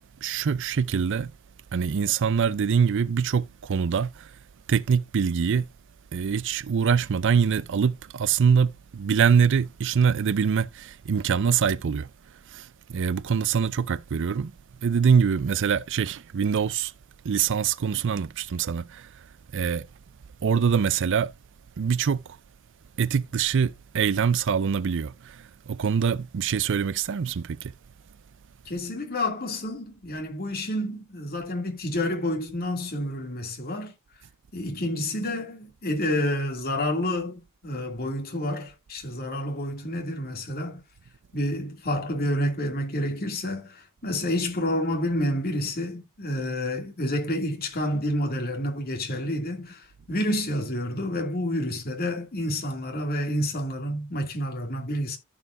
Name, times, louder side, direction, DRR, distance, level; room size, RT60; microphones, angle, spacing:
voice 1, 0.2-1.3 1.7-4.4 4.7-5.7 6.1-12.1 12.5-14.5 14.8-16.9 17.2-19.9 20.4-21.3 21.8-22.4 23.0-27.7, right 6 dB, 60° right, 0.4 m, -24 dB
voice 2, 28.7-33.9 34.5-40.8 41.3-55.2, left 1 dB, 45° left, 2.4 m, -29 dB
14.0 x 4.9 x 2.5 m
head